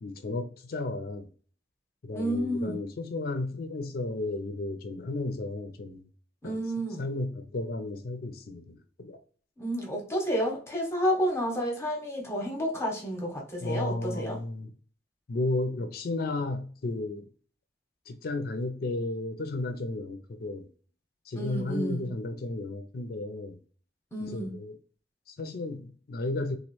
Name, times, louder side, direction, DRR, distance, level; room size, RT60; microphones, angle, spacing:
voice 1, 0.0-1.3 2.0-6.0 6.4-6.6 7.0-9.2 13.6-14.7 15.3-17.3 18.1-20.7 21.3-23.6 24.2-24.8 25.3-26.5, left 2 dB, 60° left, 0.5 m, -33 dB
voice 2, 2.1-2.8 6.4-7.0 9.6-14.4 21.4-22.1 24.1-24.5, equal, 15° left, 0.8 m, -30 dB
3.0 x 2.5 x 3.0 m
head